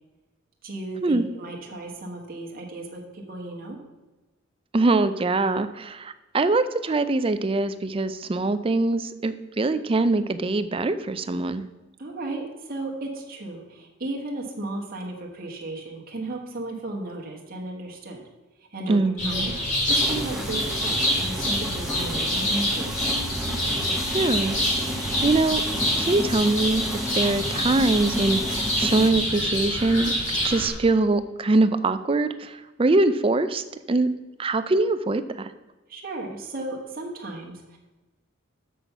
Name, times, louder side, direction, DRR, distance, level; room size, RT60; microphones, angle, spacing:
voice 1, 0.6-3.8 12.0-18.2 18.7-22.9 35.9-37.8, right 2 dB, 45° right, 0 dB, 1.4 m, -34 dB
voice 2, 4.7-11.6 18.9-19.5 24.1-24.6 25.2-25.6 26.0-34.1 34.4-35.5, right 2 dB, 30° right, 11 dB, 0.4 m, -23 dB
sound 1, 19.2-30.7, left 1 dB, 40° left, 2.7 m, -26 dB
sound 2, 19.9-29.1, equal, ahead, 0.9 m, -33 dB
6.9 x 6.3 x 5.9 m, 1.1 s
head